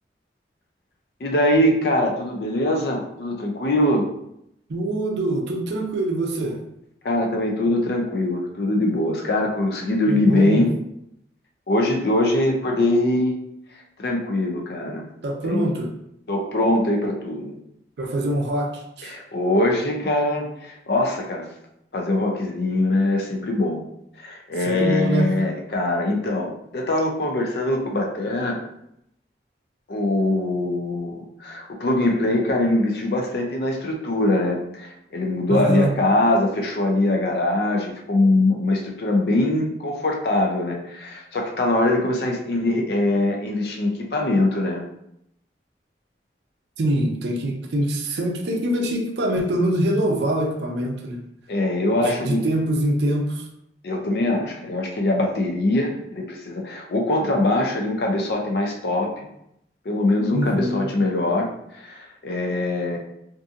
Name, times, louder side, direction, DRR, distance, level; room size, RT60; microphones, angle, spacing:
voice 1, 1.2-4.1 7.0-10.7 11.7-13.3 14.0-15.0 15.4-15.7 16.3-17.6 19.0-21.4 21.9-23.8 24.2-28.6 29.9-44.8 51.5-52.4 53.8-59.1 59.9-61.5 61.7-63.0, left 1 dB, 60° left, 1 dB, 0.5 m, -22 dB
voice 2, 4.7-6.6 10.1-10.7 15.2-15.9 18.0-19.1 24.6-25.3 35.5-35.9 46.8-51.2 52.0-53.5 60.3-60.9, right 1 dB, 75° right, 2 dB, 0.5 m, -24 dB
2.6 x 2.6 x 2.4 m, 0.78 s
head